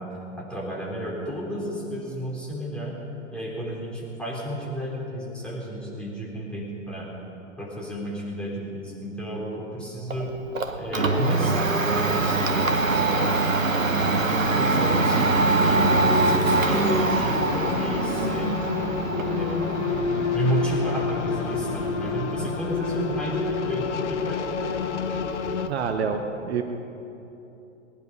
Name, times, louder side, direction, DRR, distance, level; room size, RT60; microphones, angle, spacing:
voice 1, 0.0-3.0 3.3-7.1 7.6-10.3 10.8-13.5 13.8-15.9 16.2-24.6, equal, 5° left, -5 dB, 3.8 m, -32 dB
Domestic sounds home sounds, 10.1-25.9, right 3 dB, 85° right, 1.3 m, -25 dB
sound 1, 15.7-25.7, left 5 dB, 65° left, 1.1 m, -29 dB
voice 2, 25.7-26.6, right 6 dB, 55° right, 6 dB, 1.2 m, -27 dB
20.0 x 10.5 x 5.5 m, 3.0 s
figure-of-eight pair, 110°, 39 cm